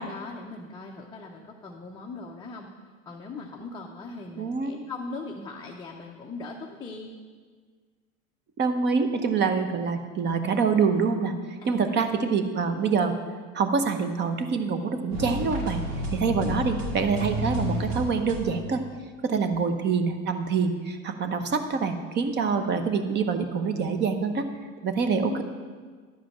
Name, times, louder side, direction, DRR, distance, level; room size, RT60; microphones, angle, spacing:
voice 1, 0.0-2.7 3.1-7.1 10.2-10.4 11.6-12.0 16.3-16.7 19.4-19.6 25.0-25.4, left 3 dB, 10° left, -2 dB, 0.6 m, -39 dB
voice 2, 4.4-4.8 8.6-11.3 11.6-13.1 13.5-15.8 16.1-18.8 19.2-24.5 24.8-25.4, right 5 dB, 25° right, 8 dB, 0.8 m, -25 dB
sound 1, 15.1-18.9, equal, 65° right, 2.5 m, -31 dB
11.5 x 5.0 x 7.2 m, 1.6 s
supercardioid pair, 130°, 41 cm